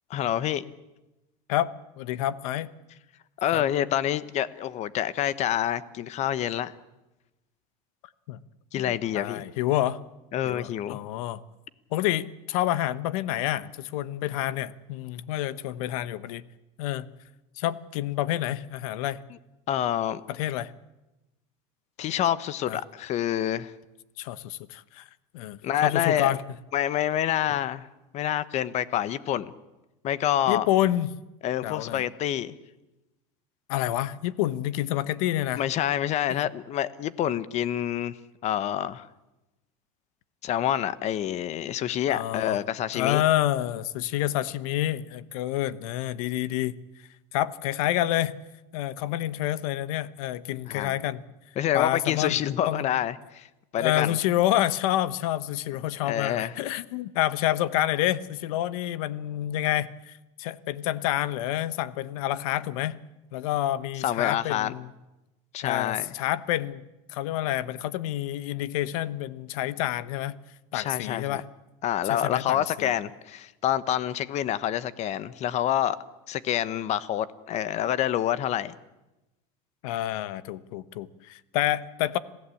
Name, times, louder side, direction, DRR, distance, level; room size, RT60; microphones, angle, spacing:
voice 1, 0.1-0.6 3.4-6.7 8.7-9.4 10.3-11.0 19.7-20.2 22.0-23.7 25.6-26.3 26.7-27.9 28.1-29.5 30.0-30.7 31.4-32.5 35.6-38.2 38.4-39.1 40.4-43.2 50.7-50.9 51.6-53.5 53.7-54.2 56.0-56.6 64.0-64.7 65.5-66.1 70.7-71.4 71.8-76.0 76.3-78.8, left 11 dB, 40° left, 16 dB, 1.1 m, -27 dB
voice 2, 1.5-2.7 3.5-3.6 8.3-8.4 8.8-10.0 10.4-11.4 11.9-16.4 16.8-17.1 17.6-19.2 20.3-20.7 22.7-22.8 24.2-25.0 25.3-26.4 30.5-31.1 31.6-32.0 33.7-35.6 36.3-36.4 42.1-42.6 42.9-46.8 47.3-48.3 48.7-51.2 51.7-52.4 52.7-52.9 53.8-63.0 63.3-64.9 65.6-66.8 67.1-70.4 70.7-71.4 72.1-72.9 79.8-82.2, left 13 dB, 80° left, 16 dB, 1.1 m, -28 dB
27.0 x 16.5 x 8.5 m, 1.0 s
supercardioid pair, 145°, 18 cm